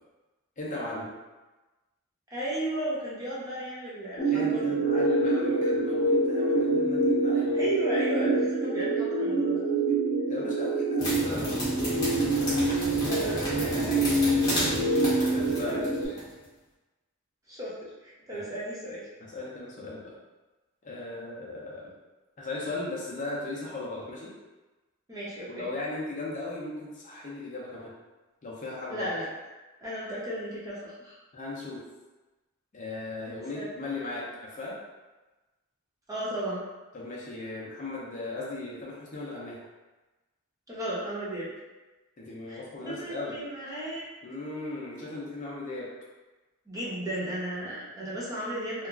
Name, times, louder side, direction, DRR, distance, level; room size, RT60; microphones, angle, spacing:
voice 1, 0.6-1.1 4.3-7.7 10.3-11.6 15.2-15.9 18.3-18.4 19.3-20.1 20.8-21.9 22.4-24.3 25.5-27.9 28.4-29.1 31.3-31.8 32.7-34.7 36.9-39.6 42.2-43.4 44.2-45.9, left 2 dB, 35° left, -5 dB, 0.5 m, -37 dB
voice 2, 2.3-5.1 7.5-9.7 12.6-14.8 15.1-15.2 15.6-16.2 17.5-19.0 25.1-25.7 28.9-29.3 29.8-31.2 33.5-33.7 36.1-36.6 40.7-41.5 42.5-44.1 46.7-48.9, right 1 dB, 15° right, -8 dB, 0.6 m, -35 dB
sound 1, 4.2-16.1, right 2 dB, 70° left, 0.8 m, -26 dB
sound 2, 11.0-16.3, left 1 dB, 15° left, 0.9 m, -33 dB
2.9 x 2.3 x 2.4 m, 1.2 s
head